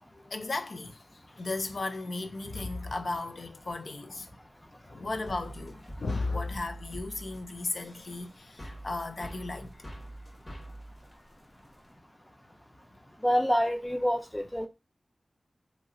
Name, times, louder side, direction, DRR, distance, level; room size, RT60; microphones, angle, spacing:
voice 1, 0.1-4.3 4.9-9.7, left 3 dB, 70° left, 0.4 m, -35 dB
sound 1, 5.3-11.9, right 1 dB, 40° left, 1.4 m, -45 dB
voice 2, 13.2-14.7, equal, 10° left, 0.5 m, -27 dB
2.9 x 2.8 x 2.6 m
cardioid pair, 45°, 0 cm